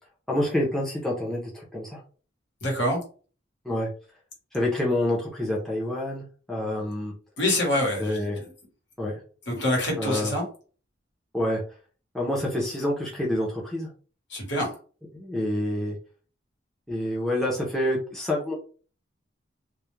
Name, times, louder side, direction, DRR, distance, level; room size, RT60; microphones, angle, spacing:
voice 1, 0.3-2.0 3.6-3.9 4.5-7.1 8.0-8.4 9.0-9.1 10.0-10.3 11.3-11.6 12.1-13.9 15.1-16.0 16.9-18.5, left 1 dB, ahead, 0.5 m, -27 dB
voice 2, 2.6-3.0 7.4-8.5 9.5-10.4 14.3-14.8, left 1 dB, 65° left, 1.0 m, -26 dB
2.3 x 2.1 x 3.0 m
head